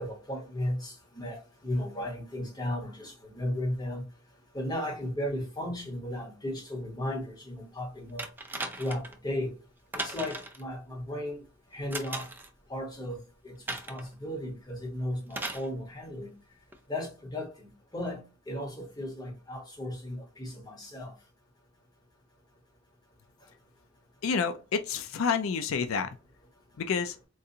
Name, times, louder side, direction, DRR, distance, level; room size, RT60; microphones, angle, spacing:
voice 1, 0.0-1.4 1.6-4.0 4.5-8.2 8.8-9.5 9.9-11.4 11.7-12.3 12.7-16.3 16.9-17.5 17.9-21.1, left 1 dB, 20° left, 1.2 m, -35 dB
sound 1, 8.2-9.2 9.9-10.6 11.9-12.5 13.7-14.1 15.3-15.7 16.7-16.8, right 2 dB, 10° right, 0.4 m, -37 dB
voice 2, 24.2-26.1 26.8-27.2, left 6 dB, 85° left, 0.4 m, -29 dB
3.9 x 2.4 x 2.7 m
head